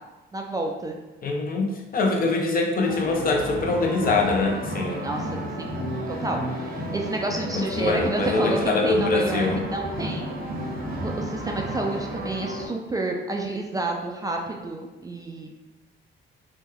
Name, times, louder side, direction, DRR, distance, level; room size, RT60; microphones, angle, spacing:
voice 1, 0.3-1.0 5.0-5.2 5.6-5.7 6.1-10.4 11.0-15.5, right 2 dB, 20° right, 1 dB, 0.3 m, -30 dB
voice 2, 1.2-1.7 1.9-5.0 7.5-9.6, left 3 dB, 45° left, 1 dB, 0.6 m, -23 dB
sound 1, 2.8-12.7, equal, 50° right, 0.7 m, -32 dB
3.0 x 2.2 x 3.6 m, 1.1 s
cardioid pair, 90°, 20 cm